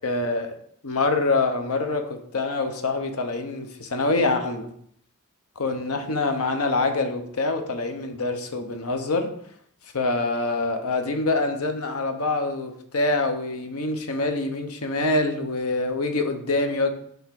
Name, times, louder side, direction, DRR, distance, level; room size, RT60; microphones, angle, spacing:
voice 1, 0.0-0.5 0.8-4.7 5.6-9.3 9.9-16.9, left 3 dB, 70° left, 6 dB, 0.9 m, -25 dB
5.4 x 3.5 x 5.8 m, 0.65 s
head